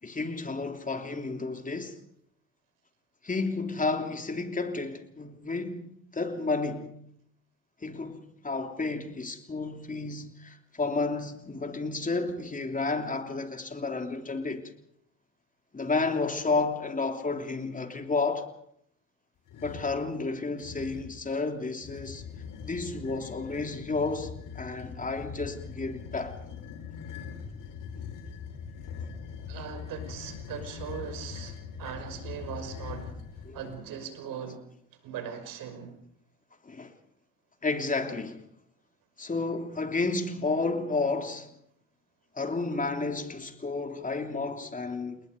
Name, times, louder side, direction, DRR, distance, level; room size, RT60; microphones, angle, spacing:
voice 1, 0.0-2.0 3.2-6.9 7.8-14.7 15.7-18.5 19.6-22.2 22.6-26.4 29.5-29.6 33.4-33.6 36.6-36.9 37.6-38.5 39.2-41.5 42.3-45.2, left 3 dB, 20° left, 3.1 m, -31 dB
sound 1, 19.5-20.0 20.6-21.2 21.8-33.8, left 6 dB, 55° left, 5.2 m, -42 dB
voice 2, 29.5-34.6 35.0-36.0, right 7 dB, 60° right, 5.8 m, -40 dB
29.5 x 20.0 x 5.3 m
hypercardioid pair, 75°, 37 cm